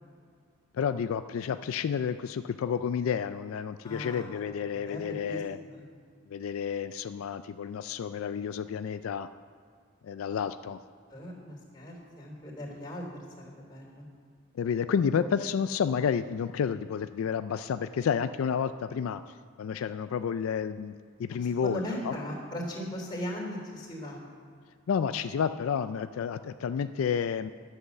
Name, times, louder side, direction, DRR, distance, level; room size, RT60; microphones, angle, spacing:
voice 1, 0.7-5.6 6.3-9.3 10.0-10.8 14.5-19.2 19.6-20.9 21.2-22.1 24.9-27.5, left 7 dB, 80° left, 11 dB, 0.3 m, -30 dB
voice 2, 3.8-4.3 4.7-5.4 5.7-5.8 11.1-13.0 13.4-14.1 21.6-24.2, left 1 dB, 20° left, -3 dB, 3.2 m, -38 dB
11.5 x 7.9 x 7.0 m, 2.1 s
head